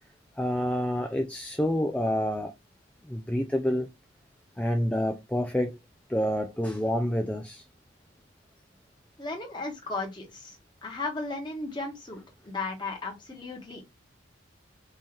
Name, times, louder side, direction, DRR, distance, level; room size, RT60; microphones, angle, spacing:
voice 1, 0.4-2.5 3.1-3.9 4.6-5.8 6.1-7.6, equal, 5° left, 0.3 m, -28 dB
voice 2, 9.2-13.8, left 3 dB, 20° left, 1.3 m, -35 dB
5.4 x 2.8 x 3.2 m
head